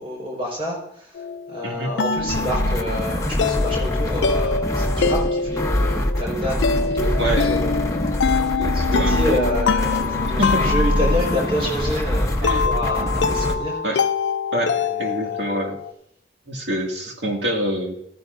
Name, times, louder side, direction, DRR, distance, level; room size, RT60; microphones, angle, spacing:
voice 1, 0.0-13.8 14.9-15.3, equal, 30° right, -2 dB, 4.6 m, -28 dB
sound 1, 1.2-15.9, left 5 dB, 85° left, 0.5 m, -25 dB
sound 2, 2.2-13.6, left 1 dB, 15° left, 0.9 m, -24 dB
voice 2, 7.2-7.5 8.6-9.5 10.4-10.7 12.4-12.7 13.0-13.1 13.4-13.6 13.8-14.0 14.5-15.8 16.5-17.9, right 1 dB, 80° right, 1 dB, 2.2 m, -26 dB
14.5 x 14.5 x 2.6 m, 0.77 s
head